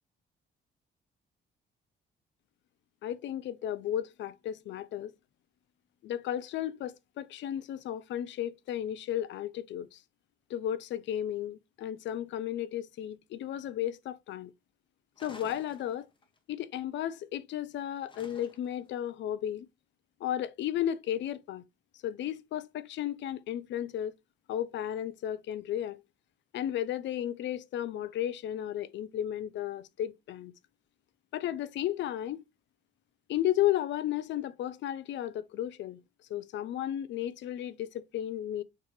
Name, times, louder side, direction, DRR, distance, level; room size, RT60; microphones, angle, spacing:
voice 1, 3.0-5.1 6.0-10.0 10.5-14.5 15.2-16.1 16.5-19.7 20.2-21.6 22.0-24.1 24.5-26.0 26.5-30.5 31.3-32.4 33.3-36.0 36.3-38.6, left 11 dB, 70° left, 0.4 m, -34 dB
sound 1, 15.2-16.4 18.1-18.9, left 2 dB, 25° left, 0.8 m, -51 dB
4.6 x 2.4 x 3.0 m
cardioid pair, 90°, 20 cm